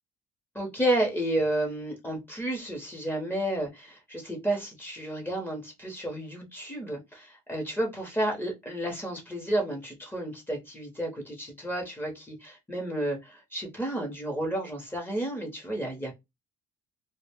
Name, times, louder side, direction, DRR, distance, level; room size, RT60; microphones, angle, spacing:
voice 1, 0.5-16.1, right 1 dB, 10° left, 1 dB, 0.9 m, -31 dB
2.3 x 2.1 x 3.3 m, 0.21 s
cardioid pair, 110°, 17 cm